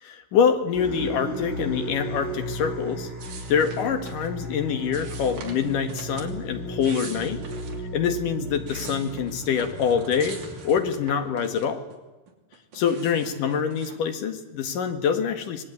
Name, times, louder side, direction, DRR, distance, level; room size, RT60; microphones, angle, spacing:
voice 1, 0.0-3.1 3.5-7.4 7.9-10.4 10.6-11.8 12.7-15.6, left 7 dB, 60° left, 7 dB, 3.2 m, -25 dB
sound 1, 0.7-11.3, equal, 30° left, 7.9 m, -35 dB
sound 2, 3.2-4.3 4.9-6.3 6.7-7.8 8.3-11.9 12.3-14.0, right 5 dB, 60° right, 4.3 m, -44 dB
25.0 x 20.0 x 9.6 m, 1.1 s
omnidirectional pair, 4.4 m